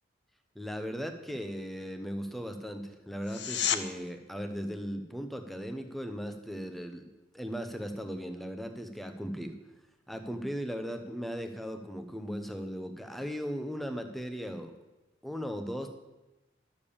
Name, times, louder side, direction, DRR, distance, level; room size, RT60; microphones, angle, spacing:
voice 1, 0.5-7.1 7.3-9.6 10.1-14.7 15.2-15.9, equal, ahead, 6 dB, 0.8 m, -37 dB
sound 1, 3.2-3.8 15.2-15.3, left 9 dB, 65° left, 0.7 m, -30 dB
11.5 x 7.2 x 7.0 m, 1.1 s
head